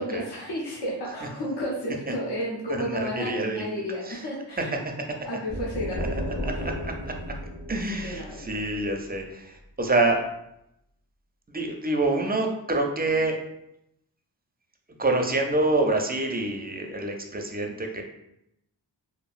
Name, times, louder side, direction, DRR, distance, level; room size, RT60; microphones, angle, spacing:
voice 1, 0.0-4.7 5.2-6.1 6.4-6.6 7.7-8.4, equal, 60° left, -4 dB, 0.7 m, -32 dB
voice 2, 2.9-3.7 4.1-4.2 6.4-7.3 7.7-10.2 11.5-13.4 15.0-18.0, right 2 dB, 20° right, 3 dB, 0.4 m, -26 dB
sound 1, 5.5-9.2, equal, 80° left, 1.4 m, -34 dB
2.7 x 2.5 x 2.4 m, 0.81 s
wide cardioid pair, 45°, 45 cm